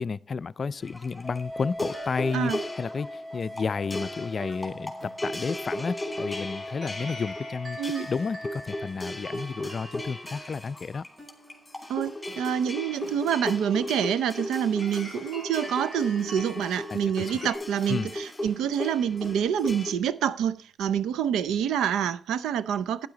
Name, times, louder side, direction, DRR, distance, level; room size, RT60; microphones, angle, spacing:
voice 1, 0.0-11.0 16.9-17.3 17.9-18.1, left 5 dB, 45° left, 0.4 m, -32 dB
sound 1, 0.8-19.9, left 1 dB, 15° left, 2.9 m, -37 dB
sound 2, 1.2-8.9, left 1 dB, 25° right, 3.8 m, -41 dB
sound 3, 1.9-17.5, right 1 dB, 45° right, 6.2 m, -47 dB
voice 2, 7.8-8.1 11.9-23.1, right 9 dB, 90° right, 0.5 m, -27 dB
12.0 x 9.6 x 3.9 m
cardioid pair, 70°, 0 cm